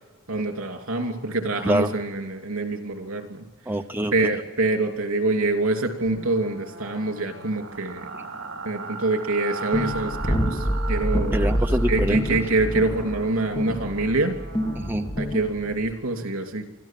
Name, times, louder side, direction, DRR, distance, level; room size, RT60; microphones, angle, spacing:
voice 1, 0.3-3.4 4.1-8.1 8.6-11.5 11.9-14.3 15.2-16.7, right 2 dB, 75° right, 5 dB, 2.9 m, -25 dB
voice 2, 3.7-4.3 11.3-12.4 14.8-15.1, right 1 dB, 10° right, 5 dB, 0.7 m, -25 dB
sound 1, 6.1-15.0, right 4 dB, 60° right, 3.6 m, -38 dB
sound 2, 9.7-15.9, equal, 25° left, 1.7 m, -27 dB
24.5 x 14.0 x 7.6 m, 1.3 s
head